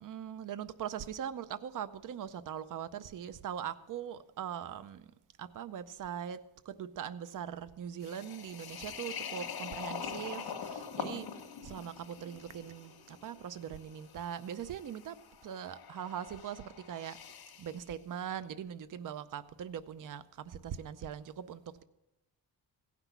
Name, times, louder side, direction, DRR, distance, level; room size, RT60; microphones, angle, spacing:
voice 1, 0.0-5.1 5.4-11.3 11.6-15.2 15.4-21.8, right 9 dB, 55° right, 0.6 m, -41 dB
sound 1, 8.0-17.8, left 6 dB, 70° left, 1.4 m, -44 dB
16.0 x 6.0 x 7.0 m
wide cardioid pair, 145°, 38 cm